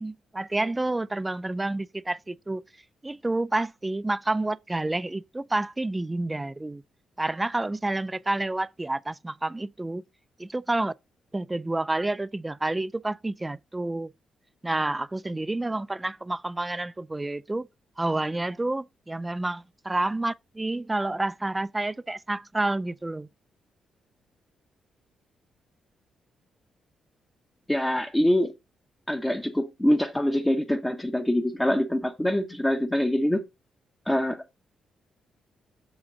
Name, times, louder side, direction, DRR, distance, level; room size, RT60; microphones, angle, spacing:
voice 1, 0.0-2.6 3.0-6.8 7.2-10.0 10.4-10.9 11.3-14.1 14.6-17.7 18.0-23.3, right 2 dB, 15° right, 0.4 m, -29 dB
voice 2, 27.7-28.5 29.1-33.4 34.1-34.4, left 1 dB, 10° left, 0.8 m, -24 dB
7.1 x 5.0 x 3.9 m
cardioid pair, 100°, 0 cm